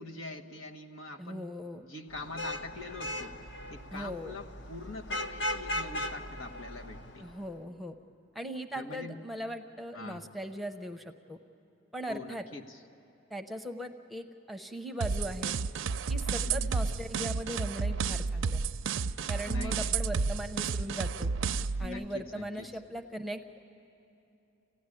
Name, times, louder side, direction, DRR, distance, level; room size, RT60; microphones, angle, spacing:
voice 1, 0.0-1.5 1.8-3.3 3.7-7.3 8.7-9.2 9.9-10.3 12.1-12.8 16.4-16.7 19.5-20.1 21.8-22.7, left 2 dB, 85° left, 5 dB, 1.3 m, -43 dB
voice 2, 1.2-1.8 3.9-4.4 7.2-7.9 8.3-11.4 11.9-12.5 13.3-15.5 16.1-18.7 19.3-21.3 21.8-23.4, equal, ahead, 5 dB, 0.7 m, -39 dB
Vehicle horn car horn honking / Traffic noise roadway noise, 2.1-7.4, left 1 dB, 60° left, 0.9 m, -38 dB
sound 1, 15.0-21.9, right 5 dB, 70° right, 0.5 m, -31 dB
28.0 x 15.5 x 9.8 m, 2.9 s
head